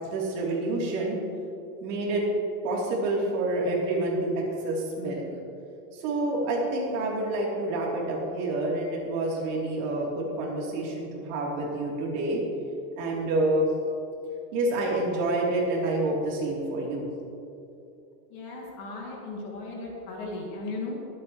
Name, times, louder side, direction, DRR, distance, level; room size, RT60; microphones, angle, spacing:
voice 1, 0.0-1.2 1.8-2.2 2.6-5.2 5.9-12.4 13.0-13.7 14.5-17.1, right 2 dB, 50° right, -4 dB, 3.4 m, -28 dB
voice 2, 18.3-21.0, left 2 dB, 40° left, -2 dB, 2.7 m, -36 dB
23.0 x 8.8 x 3.2 m, 2.7 s
supercardioid pair, 170°, 49 cm